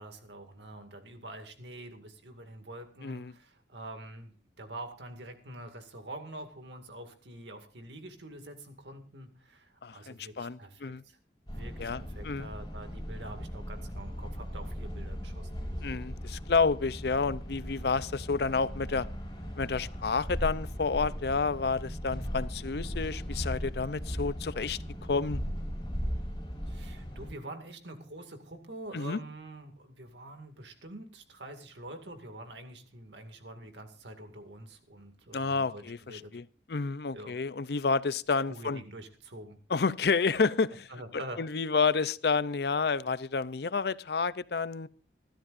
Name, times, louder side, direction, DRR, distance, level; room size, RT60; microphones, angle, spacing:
voice 1, 0.0-11.2 11.5-15.5 26.7-36.4 37.1-37.4 38.5-39.6 40.9-41.4, right 1 dB, 85° right, 2.2 m, -46 dB
voice 2, 3.0-3.3 9.8-11.0 11.8-12.5 15.8-19.1 19.6-24.8 25.1-25.4 28.9-29.2 35.3-38.8 39.7-40.9 41.1-44.9, left 4 dB, 65° left, 0.6 m, -30 dB
sound 1, 11.5-27.3, equal, 20° left, 5.4 m, -38 dB
26.0 x 12.5 x 2.6 m
head